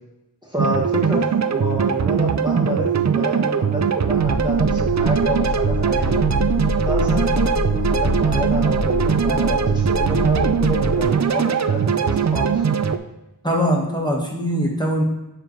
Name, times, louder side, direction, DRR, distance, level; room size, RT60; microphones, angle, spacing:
voice 1, 0.4-6.3 6.9-12.6, equal, 10° right, -4 dB, 1.1 m, -27 dB
sound 1, 0.6-13.0, right 7 dB, 45° right, 0.4 m, -20 dB
sound 2, 4.1-11.1, left 3 dB, 75° left, 0.6 m, -26 dB
voice 2, 13.4-15.0, equal, 10° left, -1 dB, 1.4 m, -21 dB
7.4 x 5.4 x 3.1 m, 0.96 s
wide cardioid pair, 45°, 39 cm